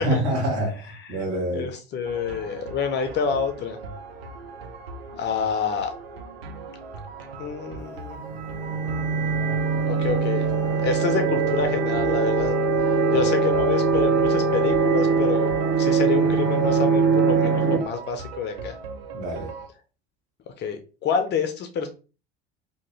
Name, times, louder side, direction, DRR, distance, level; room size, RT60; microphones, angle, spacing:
voice 1, 0.0-1.7 19.1-19.5, right 1 dB, 55° right, 1.5 m, -26 dB
voice 2, 1.5-3.8 5.1-5.9 7.4-8.2 9.9-10.5 10.8-12.6 13.1-15.5 15.8-18.8 20.6-21.9, left 6 dB, 35° left, 0.5 m, -27 dB
sound 1, 2.0-19.7, right 4 dB, 80° right, 0.6 m, -39 dB
sound 2, 8.2-17.8, right 4 dB, 40° right, 0.9 m, -22 dB
2.8 x 2.1 x 3.1 m
figure-of-eight pair, 65°, 30 cm